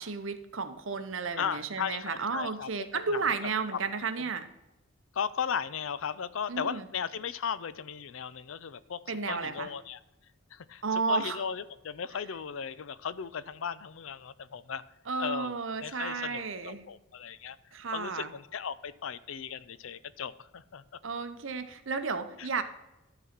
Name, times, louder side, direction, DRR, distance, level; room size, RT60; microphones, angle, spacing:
voice 1, 0.0-4.5 6.5-6.8 9.1-9.7 10.8-11.4 15.1-16.9 17.7-18.3 21.0-22.6, right 4 dB, 65° right, 9 dB, 0.9 m, -33 dB
voice 2, 1.4-2.7 3.1-3.3 3.7-3.8 5.1-9.0 9.3-10.0 10.5-14.8 15.2-15.5 15.8-17.6 17.9-20.8 22.4-22.5, left 7 dB, 70° left, 16 dB, 0.5 m, -36 dB
12.5 x 4.1 x 5.9 m, 0.94 s
head